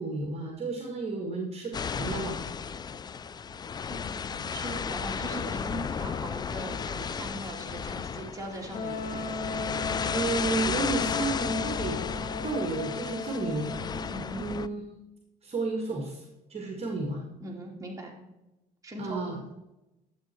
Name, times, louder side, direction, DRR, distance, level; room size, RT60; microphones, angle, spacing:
voice 1, 0.0-2.4 10.1-12.0 12.4-13.7 14.3-15.0 15.4-17.2 19.0-19.4, right 3 dB, 35° right, 2 dB, 1.8 m, -32 dB
sound 1, 1.7-14.7, left 6 dB, 25° left, 0.3 m, -34 dB
voice 2, 3.8-9.3 14.1-14.4 17.4-18.1 18.8-19.2, right 1 dB, 20° right, -1 dB, 2.6 m, -40 dB
Wind instrument woodwind instrument, 8.7-14.3, left 3 dB, 55° left, 2.3 m, -36 dB
11.5 x 7.8 x 4.4 m, 0.96 s
cardioid pair, 110°, 17 cm